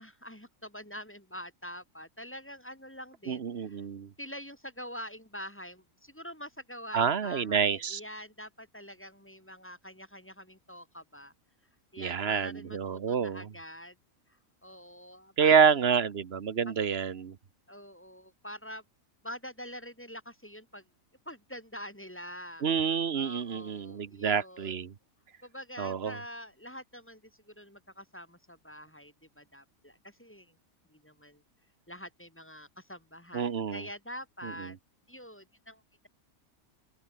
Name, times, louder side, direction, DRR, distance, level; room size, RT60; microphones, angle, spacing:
voice 1, 0.0-3.8 4.2-11.3 11.9-14.0 14.6-15.8 17.7-18.8 19.2-20.9 21.3-22.6 23.1-24.8 25.4-30.5 30.9-31.4 31.9-34.8 35.1-36.1, equal, 10° left, 1.8 m, -45 dB
voice 2, 3.3-4.1 6.9-8.0 12.0-13.5 15.4-17.4 22.6-24.9 25.8-26.2 33.3-33.8 34.4-34.7, right 7 dB, 50° right, 1.2 m, -28 dB
open air
omnidirectional pair, 1.4 m